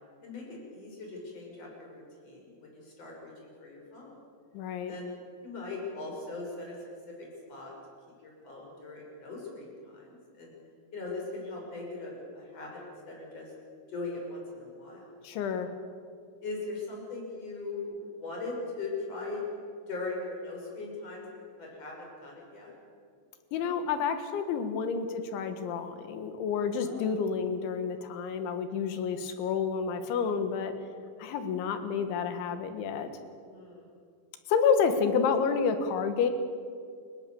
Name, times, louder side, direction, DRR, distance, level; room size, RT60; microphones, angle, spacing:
voice 1, 0.2-4.2 4.8-5.1 5.4-6.8 7.1-7.7 8.2-10.5 10.9-13.5 13.9-15.1 16.4-19.4 19.9-22.7 26.8-27.1 31.2-31.4 33.4-33.9, left 3 dB, 30° left, -1 dB, 6.8 m, -40 dB
voice 2, 4.5-4.9 15.2-15.7 23.5-30.7 31.2-33.1 34.5-36.3, left 6 dB, 75° left, 8 dB, 3.9 m, -29 dB
29.0 x 17.5 x 7.1 m, 2.3 s
omnidirectional pair, 5.6 m